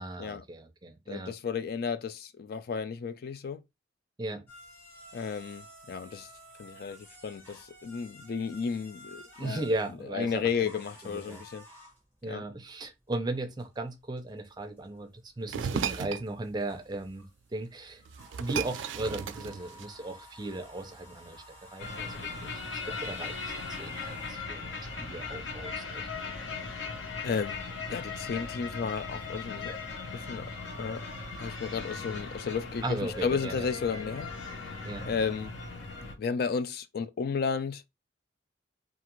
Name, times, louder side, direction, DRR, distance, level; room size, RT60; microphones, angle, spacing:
voice 1, 0.0-1.3 4.2-4.4 9.4-10.7 11.0-11.4 12.2-17.3 17.5-18.0 18.4-26.3 32.8-33.7 34.8-35.1, right 2 dB, 20° right, 0.5 m, -37 dB
voice 2, 1.1-3.6 5.1-6.3 6.6-9.6 10.1-11.6 12.3-12.4 27.2-27.6 27.9-29.7 30.1-30.5 30.8-31.1 31.4-34.3 35.1-35.5 36.2-37.8, left 5 dB, 55° left, 0.3 m, -33 dB
sound 1, 4.5-24.3, equal, 10° left, 0.9 m, -53 dB
sound 2, 15.5-16.3 17.6-17.7 18.0-20.1, right 7 dB, 85° right, 0.3 m, -34 dB
sound 3, 21.8-36.2, left 4 dB, 90° left, 0.8 m, -38 dB
2.5 x 2.4 x 3.0 m
head